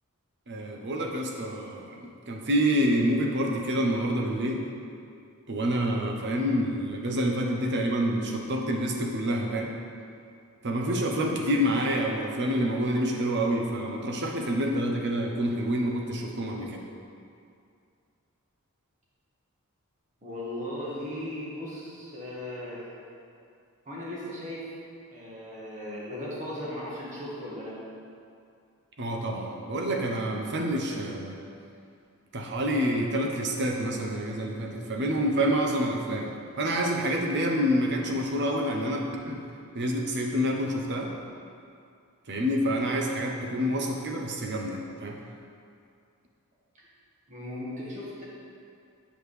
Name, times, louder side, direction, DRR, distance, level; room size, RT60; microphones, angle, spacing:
voice 1, 0.5-2.0 2.3-4.6 5.5-9.7 10.6-16.8 29.0-31.4 32.3-39.4 39.7-41.1 42.3-45.2, equal, 55° right, 1 dB, 0.8 m, -27 dB
voice 2, 20.2-22.8 23.8-24.6 25.1-27.8 47.3-48.2, left 1 dB, 35° right, -7 dB, 1.6 m, -37 dB
7.9 x 5.0 x 3.3 m, 2.4 s
head